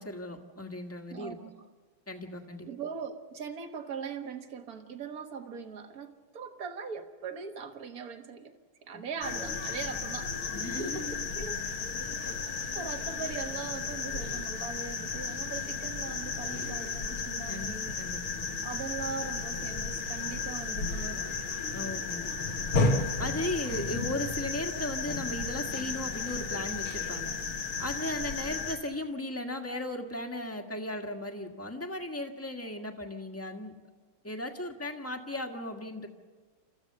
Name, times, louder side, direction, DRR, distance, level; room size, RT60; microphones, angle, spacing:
voice 1, 0.0-1.4 2.1-2.7 8.9-9.0 10.5-11.2 17.5-18.5 21.7-22.8 23.2-27.3 27.8-33.7 34.2-36.1, left 1 dB, 10° left, 3 dB, 1.3 m, -37 dB
voice 2, 1.1-1.6 2.6-11.6 12.1-12.4 12.7-18.0 18.6-21.4, right 6 dB, 50° right, 6 dB, 1.7 m, -41 dB
sound 1, 9.2-28.8, left 4 dB, 90° left, 2.6 m, -33 dB
29.5 x 14.5 x 6.6 m, 1.4 s
omnidirectional pair, 2.3 m